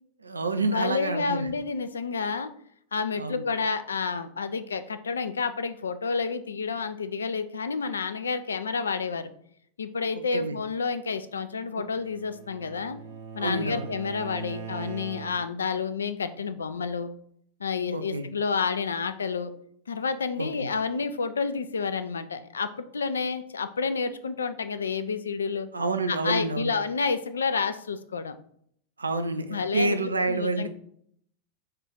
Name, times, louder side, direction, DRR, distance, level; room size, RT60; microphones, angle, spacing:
voice 1, 0.2-1.5 3.2-3.4 10.3-10.6 11.7-11.8 13.4-13.9 17.9-18.3 20.4-20.7 25.7-26.7 29.0-30.7, right 3 dB, 80° right, 9 dB, 0.4 m, -28 dB
voice 2, 0.7-2.5 2.9-9.3 9.8-13.0 13.3-17.1 17.6-19.5 19.9-25.7 26.1-28.3 29.5-30.0 30.3-30.7, left 5 dB, 70° left, 11 dB, 0.3 m, -29 dB
Bowed string instrument, 11.7-15.7, right 5 dB, 50° right, 0.7 m, -41 dB
4.8 x 2.4 x 4.4 m, 0.66 s
figure-of-eight pair, 90°, 0 cm